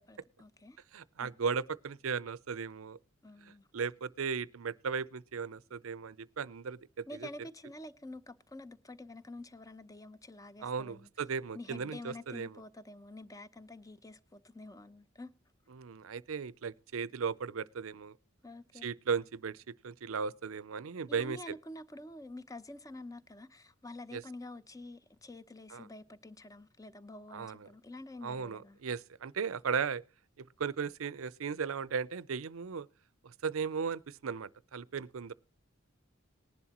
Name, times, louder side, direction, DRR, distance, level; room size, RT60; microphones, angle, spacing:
voice 1, 0.0-0.8 1.2-1.3 3.2-3.7 7.1-11.1 11.5-15.3 18.4-18.9 21.1-28.8, left 1 dB, 15° left, 0.7 m, -48 dB
voice 2, 0.9-3.0 3.4-6.8 7.2-7.3 10.6-12.6 15.7-18.2 18.8-21.5 24.1-24.2 25.7-25.9 27.3-27.7 28.2-30.0 30.4-32.9 33.2-35.3, right 6 dB, 85° right, 0.5 m, -36 dB
19.0 x 11.0 x 2.9 m
head